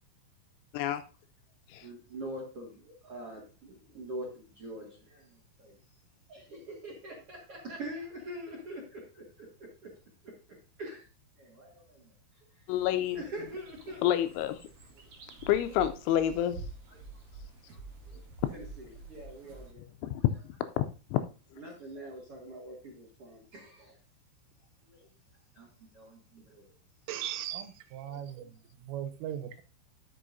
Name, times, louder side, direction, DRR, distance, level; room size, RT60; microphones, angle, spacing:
voice 1, 1.8-5.8 6.3-9.5 9.8-9.9 10.2-10.3 10.8-11.0 11.4-12.1 13.1-14.0 17.7-17.8 18.1-18.3 18.5-19.9 21.6-24.0 24.8-25.1 25.5-26.7, right 1 dB, 65° right, 1.4 m, -44 dB
voice 2, 12.7-13.2 14.0-14.6 15.5-16.6 20.0-20.2 20.8-21.2, left 11 dB, 85° left, 2.8 m, -28 dB
sound 1, 12.7-19.7, right 3 dB, 45° right, 2.2 m, -48 dB
voice 3, 27.1-29.6, right 11 dB, 85° right, 3.4 m, -38 dB
12.0 x 6.9 x 2.6 m
omnidirectional pair, 5.6 m